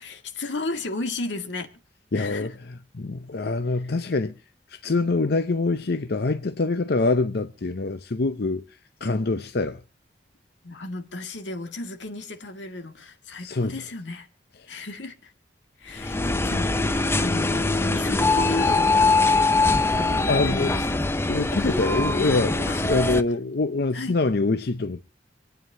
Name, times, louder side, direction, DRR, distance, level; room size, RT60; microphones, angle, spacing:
voice 1, 0.0-1.7 2.1-2.5 10.6-14.3 14.7-15.3 15.8-19.1 19.6-20.8 21.6-21.7 22.7-23.1 23.9-24.2, left 2 dB, 90° left, 1.9 m, -34 dB
voice 2, 2.1-2.5 2.9-4.3 4.7-8.6 9.0-9.8 13.4-13.7 20.3-20.8 21.3-25.0, left 3 dB, 60° left, 0.7 m, -25 dB
sound 1, 16.0-23.2, left 3 dB, 15° left, 0.5 m, -22 dB
26.0 x 9.3 x 2.7 m
head